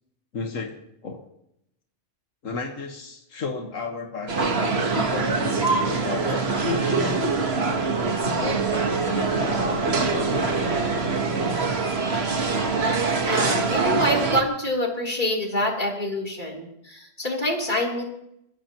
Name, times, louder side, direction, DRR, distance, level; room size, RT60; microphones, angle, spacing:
voice 1, 0.3-1.3 2.4-7.2 8.4-10.6 11.3-11.5, left 4 dB, 90° left, 3 dB, 1.8 m, -33 dB
sound 1, 4.3-14.4, right 4 dB, 55° right, 1.7 m, -24 dB
voice 2, 13.3-18.0, left 1 dB, 35° left, -2 dB, 3.6 m, -26 dB
29.5 x 14.5 x 3.0 m, 0.79 s
omnidirectional pair, 1.3 m